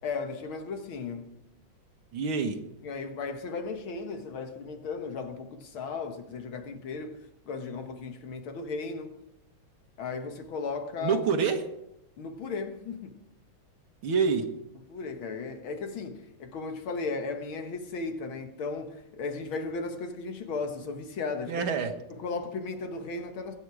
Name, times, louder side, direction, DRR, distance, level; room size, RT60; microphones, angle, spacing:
voice 1, 0.0-1.4 2.8-9.2 10.0-11.2 12.2-13.1 14.9-21.6 22.1-23.5, left 4 dB, 80° left, 2.3 m, -36 dB
voice 2, 2.1-2.6 11.0-11.7 14.0-14.5 21.5-21.9, right 5 dB, 85° right, 2.3 m, -26 dB
22.0 x 9.1 x 4.9 m
omnidirectional pair, 2.2 m